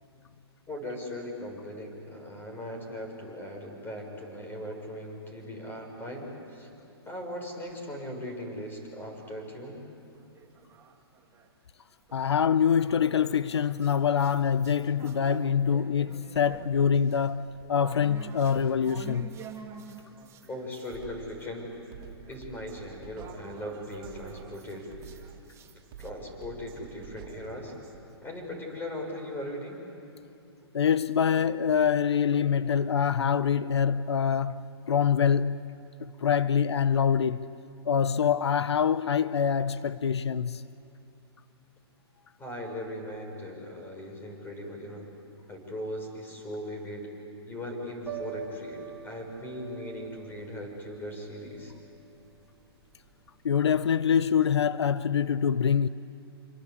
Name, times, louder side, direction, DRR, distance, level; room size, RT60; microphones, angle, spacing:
voice 1, 0.7-6.7 7.0-9.8 20.5-21.7 22.3-24.9 26.0-27.7 28.2-29.8 42.4-45.1 45.5-47.1 47.5-51.7, left 1 dB, 15° left, 6.2 m, -39 dB
sound 1, 10.1-11.5 12.1-21.0 21.3-26.1, right 6 dB, 20° right, 2.1 m, -48 dB
voice 2, 12.1-19.3 30.7-35.6 36.0-37.4 37.8-40.6 53.4-55.9, left 7 dB, 90° left, 0.6 m, -25 dB
Drum kit, 20.2-20.3 20.8-28.0, right 8 dB, 55° right, 2.7 m, -48 dB
Piano, 48.0-53.9, right 7 dB, 5° right, 6.9 m, -44 dB
27.0 x 26.0 x 8.4 m
hypercardioid pair, 130°, 14 cm